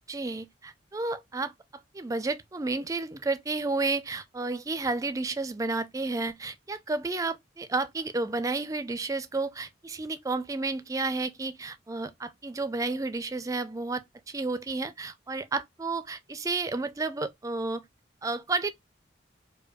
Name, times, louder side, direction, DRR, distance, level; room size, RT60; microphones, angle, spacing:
voice 1, 0.1-1.5 1.9-17.8 18.2-18.7, right 3 dB, 15° right, 0.3 m, -31 dB
4.9 x 2.3 x 2.2 m
head